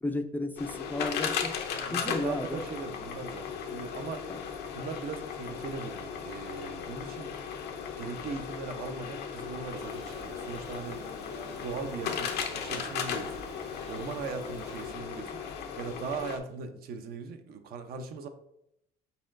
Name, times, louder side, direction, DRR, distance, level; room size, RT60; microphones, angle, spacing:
voice 1, 0.0-1.5 1.9-2.7 4.3-4.4, left 1 dB, 10° left, 6 dB, 0.4 m, -33 dB
sound 1, 0.6-16.4, left 7 dB, 75° left, 0.6 m, -37 dB
voice 2, 1.7-4.3 4.7-7.3 8.0-11.2 11.5-13.5 13.9-15.4 15.8-18.3, right 5 dB, 65° right, 7 dB, 0.6 m, -39 dB
sound 2, 9.8-14.9, right 2 dB, 85° right, 1.7 m, -48 dB
4.5 x 4.1 x 2.5 m, 0.77 s
cardioid pair, 110°, 17 cm